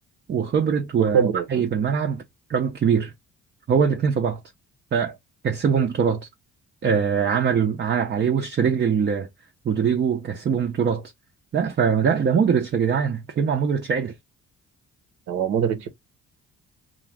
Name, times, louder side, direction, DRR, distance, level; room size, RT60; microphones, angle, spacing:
voice 1, 0.3-2.2 2.5-3.1 3.7-4.4 4.9-5.2 5.4-6.3 6.8-9.3 9.6-11.1 11.5-14.1, right 7 dB, 35° right, 0.5 m, -22 dB
voice 2, 1.1-1.6 15.3-15.9, right 7 dB, 80° right, 0.8 m, -23 dB
2.5 x 2.2 x 3.2 m
cardioid pair, 90°, 30 cm